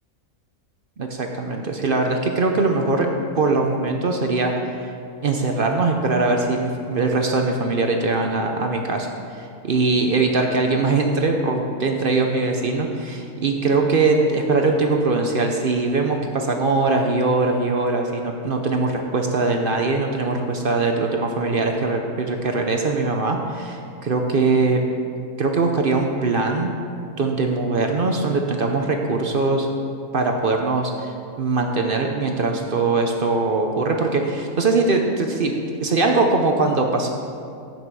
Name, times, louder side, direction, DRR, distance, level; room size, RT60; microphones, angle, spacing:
voice 1, 1.0-4.9 5.2-24.8 25.4-26.7 27.2-29.7 30.1-31.1 31.4-35.5 35.8-37.1, right 3 dB, 50° right, 3 dB, 0.7 m, -21 dB
14.0 x 6.0 x 4.7 m, 2.5 s
omnidirectional pair, 1.5 m